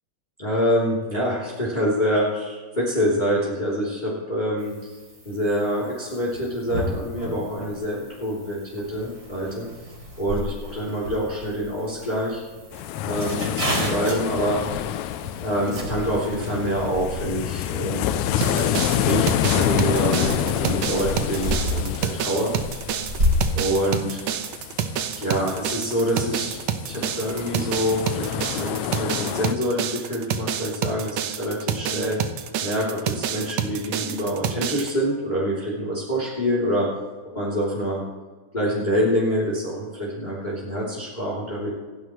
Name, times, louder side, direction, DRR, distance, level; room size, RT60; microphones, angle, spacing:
voice 1, 0.4-5.0 5.2-9.7 10.2-12.4 13.0-14.6 15.4-22.5 22.9-23.0 23.5-24.2 25.1-26.6 26.9-32.2 32.6-36.9 37.3-38.0 38.5-41.7, equal, 15° left, -5 dB, 3.2 m, -26 dB
sound 1, 4.6-23.5, left 1 dB, 30° right, 3.6 m, -32 dB
sound 2, 12.7-29.5, left 11 dB, 80° left, 1.8 m, -28 dB
sound 3, 18.4-34.9, right 8 dB, 70° right, 2.0 m, -28 dB
27.5 x 11.0 x 3.2 m, 1.4 s
omnidirectional pair, 3.6 m